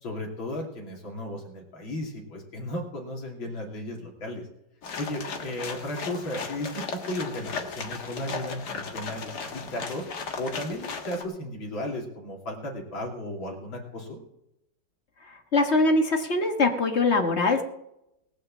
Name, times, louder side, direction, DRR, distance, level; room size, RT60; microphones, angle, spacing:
voice 1, 0.0-4.5 5.0-10.1 10.4-14.2, left 1 dB, 75° left, 0 dB, 3.5 m, -35 dB
sound 1, 4.8-11.2, left 4 dB, 55° left, 2.0 m, -36 dB
voice 2, 15.5-17.6, left 2 dB, 35° left, 5 dB, 1.4 m, -22 dB
19.0 x 6.5 x 7.3 m, 0.84 s
omnidirectional pair, 2.2 m